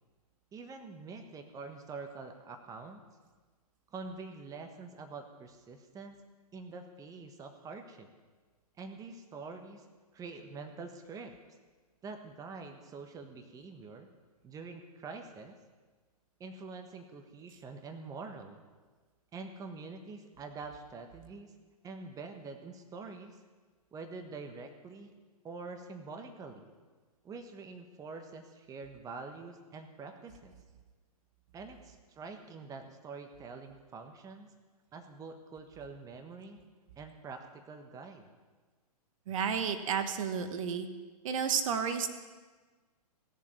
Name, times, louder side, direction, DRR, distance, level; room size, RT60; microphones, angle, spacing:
voice 1, 0.5-3.0 3.9-6.1 6.5-8.1 8.8-9.9 10.1-11.3 12.0-14.1 14.4-15.5 16.4-18.6 19.3-21.5 21.8-23.4 23.9-25.1 25.4-26.7 27.2-30.5 31.5-34.5 34.9-36.6 37.0-38.3, right 4 dB, 15° right, 6 dB, 1.4 m, -46 dB
voice 2, 39.3-40.9 41.2-42.1, right 7 dB, 55° right, 8 dB, 1.5 m, -31 dB
18.0 x 7.4 x 9.6 m, 1.4 s
hypercardioid pair, 125°, 20 cm